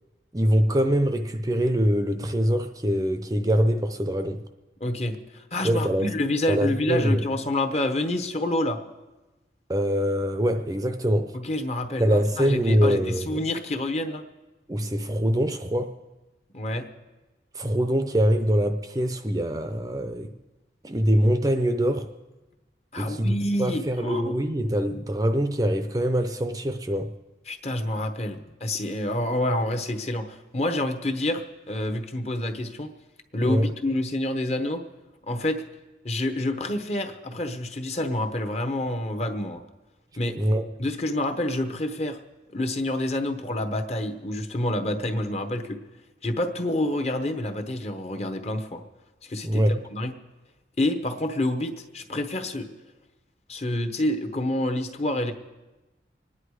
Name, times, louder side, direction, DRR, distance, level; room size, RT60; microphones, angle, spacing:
voice 1, 0.3-4.4 5.6-6.1 6.5-7.2 9.7-11.4 12.0-13.4 14.7-16.0 17.5-20.3 20.8-22.1 23.0-27.1 33.4-33.7 40.4-40.6 49.4-49.8, equal, 20° right, 0.6 m, -24 dB
voice 2, 4.8-8.8 11.3-14.2 16.5-16.9 22.9-24.4 27.5-32.9 33.3-34.8 35.3-35.6 36.0-39.6 40.2-40.4 40.8-42.2 42.5-45.8 46.2-48.8 49.2-49.6 49.9-50.1 50.8-52.7 53.5-55.3, left 1 dB, 35° left, 1.1 m, -28 dB
25.5 x 10.0 x 4.8 m
head